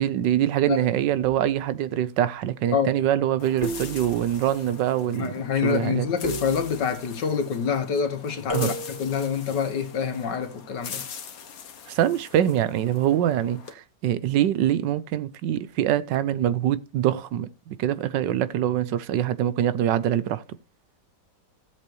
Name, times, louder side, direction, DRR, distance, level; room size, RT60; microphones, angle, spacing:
voice 1, 0.0-5.3 5.6-6.1 8.5-8.7 11.9-20.4, right 11 dB, 85° right, 1.4 m, -24 dB
sound 1, 3.4-13.7, left 7 dB, 55° left, 1.6 m, -42 dB
sound 2, 3.6-4.5 6.2-7.2 8.5-9.2, right 1 dB, 15° right, 2.5 m, -35 dB
voice 2, 5.1-8.7 9.0-11.0, left 6 dB, 80° left, 2.0 m, -26 dB
15.5 x 7.6 x 3.0 m
omnidirectional pair, 1.9 m